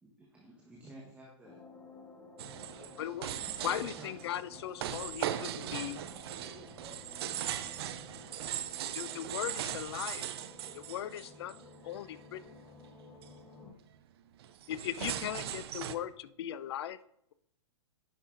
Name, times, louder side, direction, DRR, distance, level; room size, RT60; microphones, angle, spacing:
voice 1, 0.0-1.6 2.8-3.1 3.4-4.4, right 1 dB, 10° right, -2 dB, 1.1 m, -53 dB
sound 1, 1.4-13.7, left 3 dB, 10° left, 0.9 m, -54 dB
sound 2, 2.4-11.7 12.2-12.5 12.8-12.9 13.2-13.5 14.4-16.0, right 11 dB, 60° right, 0.6 m, -39 dB
voice 2, 2.5-3.0 5.5-7.2 7.5-9.3, right 3 dB, 40° right, -3 dB, 1.9 m, -56 dB
voice 3, 3.6-6.0 8.9-10.3 10.7-11.5 11.8-12.4 14.7-17.0, left 11 dB, 60° left, 16 dB, 0.4 m, -38 dB
10.0 x 5.5 x 2.5 m, 0.76 s
hypercardioid pair, 125°, 15 cm